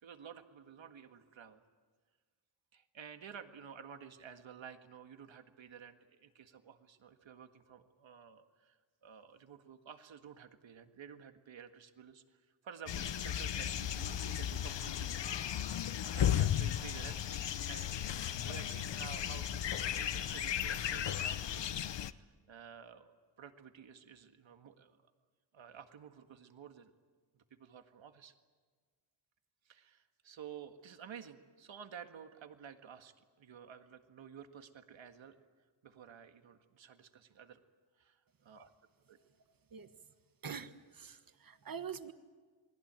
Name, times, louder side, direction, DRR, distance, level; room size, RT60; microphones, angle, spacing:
voice 1, 0.0-1.6 2.7-15.3 16.1-24.9 25.5-26.9 27.3-28.3 29.7-35.3 35.8-37.6 38.0-38.7 39.1-39.2, right 8 dB, 75° right, 7 dB, 1.9 m, -52 dB
sound 1, 12.9-22.1, left 10 dB, 65° left, 0.9 m, -35 dB
voice 2, 40.4-42.1, right 7 dB, 45° right, 10 dB, 1.5 m, -45 dB
28.5 x 21.0 x 9.0 m, 1.5 s
wide cardioid pair, 130°, 46 cm